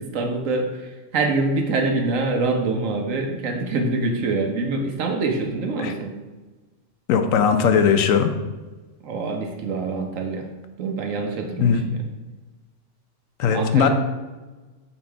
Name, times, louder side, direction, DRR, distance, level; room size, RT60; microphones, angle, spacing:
voice 1, 0.0-6.1 9.0-10.5 10.8-12.0 13.4-13.9, right 3 dB, 80° right, 3 dB, 1.2 m, -25 dB
voice 2, 7.1-8.3 11.6-11.8 13.4-13.9, left 7 dB, 90° left, 7 dB, 1.0 m, -18 dB
7.1 x 5.3 x 3.3 m, 1.2 s
omnidirectional pair, 1.3 m